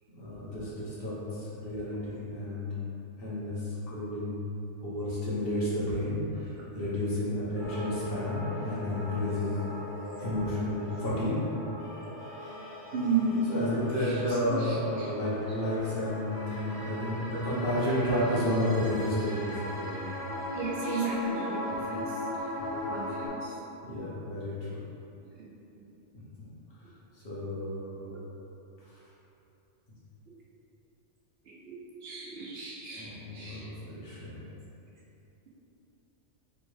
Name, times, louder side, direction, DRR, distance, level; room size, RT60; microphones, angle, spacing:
voice 1, 0.2-2.7 3.2-4.4 4.8-9.6 10.2-11.4 13.5-20.2 21.8-21.9 22.6-23.0 23.8-24.8 26.1-26.5 27.2-28.1 33.0-34.4, left 1 dB, 55° left, -9 dB, 1.1 m, -32 dB
sound 1, 7.5-23.3, left 1 dB, 90° left, 1.7 m, -39 dB
voice 2, 7.6-8.2 10.0-10.2 12.1-12.2 12.9-13.5 13.9-15.1 20.5-22.3 22.9-23.6 25.2-25.5 28.1-28.2 31.4-33.7, right 3 dB, 60° right, -5 dB, 0.8 m, -35 dB
3.5 x 3.2 x 3.1 m, 2.9 s
omnidirectional pair, 1.3 m